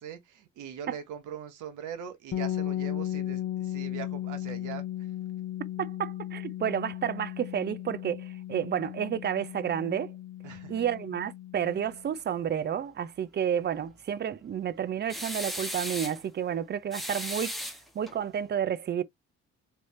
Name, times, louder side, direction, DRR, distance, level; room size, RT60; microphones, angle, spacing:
voice 1, 0.0-5.1 10.4-10.8, right 8 dB, 80° right, 1.1 m, -41 dB
sound 1, 2.3-12.1, left 12 dB, 50° left, 0.6 m, -36 dB
voice 2, 5.8-10.1 10.7-17.5 17.9-19.0, right 9 dB, 35° right, 0.4 m, -31 dB
sound 2, 15.1-16.2 16.9-18.2, equal, ahead, 0.9 m, -36 dB
3.3 x 2.7 x 3.1 m
cardioid pair, 90°, 30 cm